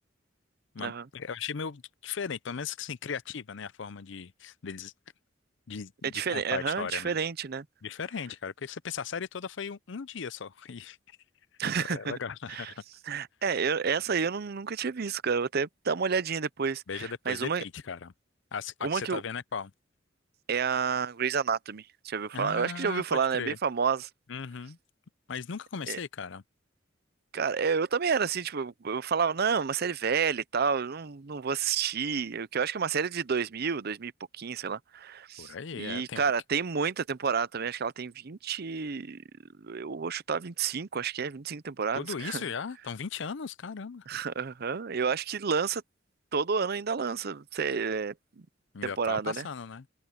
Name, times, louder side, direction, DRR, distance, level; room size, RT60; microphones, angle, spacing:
voice 1, 0.7-4.9 5.7-7.1 7.8-11.0 11.9-12.7 16.9-18.1 18.5-19.7 22.3-23.6 24.3-24.8 25.3-26.4 35.4-36.3 41.9-44.1 48.7-49.9, left 6 dB, 70° left, 0.6 m, -37 dB
voice 2, 6.1-7.6 11.6-12.1 12.5-12.7 13.1-17.6 18.8-19.2 20.5-24.1 25.9-26.0 27.3-34.1 34.4-39.2 39.6-42.4 44.1-45.8 46.3-48.1 48.8-49.5, right 6 dB, 55° right, 0.7 m, -30 dB
head